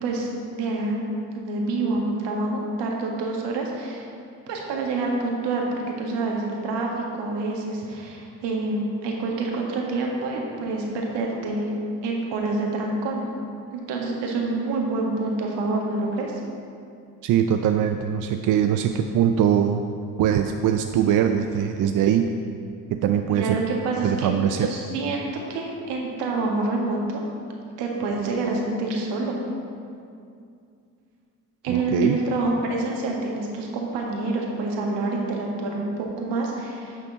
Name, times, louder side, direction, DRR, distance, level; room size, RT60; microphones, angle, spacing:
voice 1, 0.0-1.0 1.3-4.1 4.5-6.9 7.1-11.7 12.0-13.3 13.7-16.3 23.3-24.3 24.6-27.2 27.8-29.4 31.6-37.0, right 2 dB, 60° right, -1 dB, 1.8 m, -27 dB
voice 2, 17.2-19.8 20.2-22.3 22.9-23.6 24.0-24.7 31.7-32.2, right 9 dB, 45° right, 6 dB, 0.5 m, -22 dB
10.5 x 6.7 x 4.0 m, 2.4 s
hypercardioid pair, 55°, 47 cm